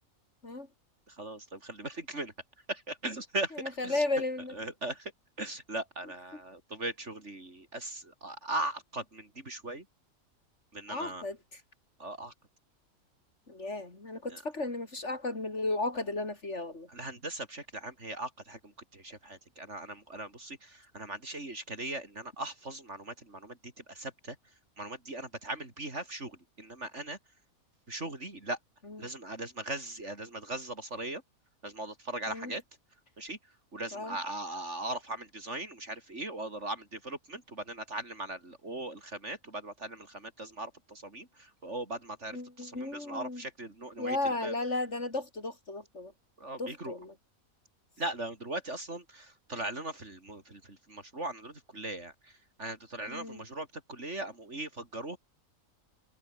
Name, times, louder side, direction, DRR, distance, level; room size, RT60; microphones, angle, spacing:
voice 1, 1.1-2.3 2.7-4.0 4.5-5.1 5.4-9.9 10.7-11.2 12.0-12.3 14.3-14.4 16.9-24.4 24.8-27.2 27.9-28.6 29.0-31.2 31.6-32.6 33.2-44.5 46.4-47.0 48.0-55.2, right 2 dB, 55° right, 4.6 m, -39 dB
voice 2, 3.6-4.5 10.9-11.4 13.5-16.9 28.9-29.0 32.3-32.5 33.9-34.2 42.3-43.4 44.0-46.1 46.6-47.1 53.1-53.4, left 2 dB, 50° left, 5.2 m, -34 dB
omnidirectional pair, 1.5 m